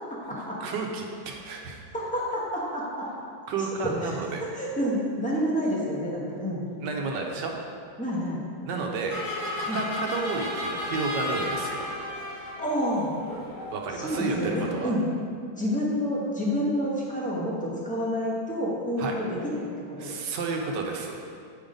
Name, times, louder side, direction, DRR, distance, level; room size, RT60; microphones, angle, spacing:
voice 1, 0.6-1.8 3.5-4.4 6.8-7.5 8.6-9.2 9.5-11.9 13.7-14.9 19.0-19.1 20.0-21.2, right 4 dB, 70° right, 1 dB, 1.3 m, -31 dB
voice 2, 2.1-3.0 3.8-4.2 4.5-6.6 8.0-8.4 9.7-9.8 12.6-13.1 13.9-15.0 15.6-20.1, equal, 5° left, -5 dB, 0.7 m, -28 dB
sound 1, 9.1-14.7, left 2 dB, 75° left, 2.2 m, -34 dB
7.9 x 3.8 x 5.1 m, 2.3 s
omnidirectional pair, 2.1 m